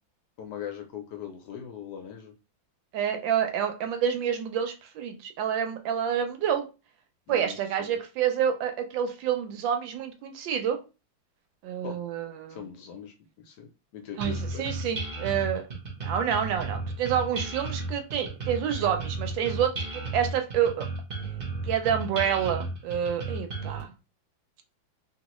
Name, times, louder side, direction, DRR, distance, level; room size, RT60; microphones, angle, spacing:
voice 1, 0.4-2.3 7.3-8.0 11.8-12.0 12.5-14.8, left 9 dB, 75° left, 4 dB, 1.0 m, -41 dB
voice 2, 2.9-6.6 7.3-10.8 11.6-12.6 14.2-15.6 16.0-20.9 21.6-23.9, right 8 dB, 80° right, 6 dB, 1.2 m, -28 dB
sound 1, 14.2-23.8, right 3 dB, 55° right, 0.4 m, -34 dB
3.0 x 2.4 x 3.0 m, 0.30 s
omnidirectional pair, 2.1 m